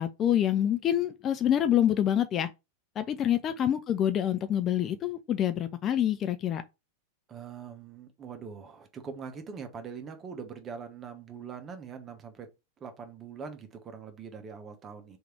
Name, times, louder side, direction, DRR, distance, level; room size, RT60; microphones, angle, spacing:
voice 1, 0.0-2.5 3.0-6.6, left 10 dB, 30° left, 0.4 m, -26 dB
voice 2, 7.3-12.5 12.8-15.2, right 6 dB, 25° right, 1.0 m, -42 dB
3.5 x 3.3 x 4.4 m
figure-of-eight pair, 90°, 0 cm